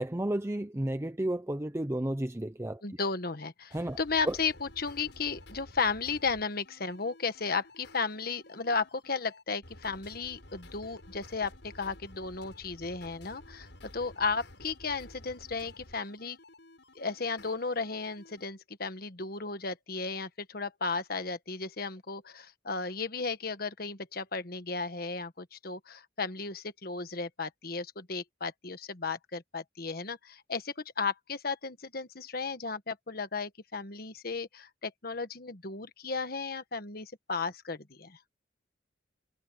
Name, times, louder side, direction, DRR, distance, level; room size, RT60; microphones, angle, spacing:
voice 1, 0.0-2.8 3.7-4.0 4.3-4.4, right 1 dB, 15° right, 0.6 m, -32 dB
voice 2, 2.8-13.7 13.9-16.4 16.9-38.2, left 4 dB, 55° left, 1.4 m, -34 dB
sound 1, 3.7-18.4, left 1 dB, 70° left, 6.6 m, -52 dB
head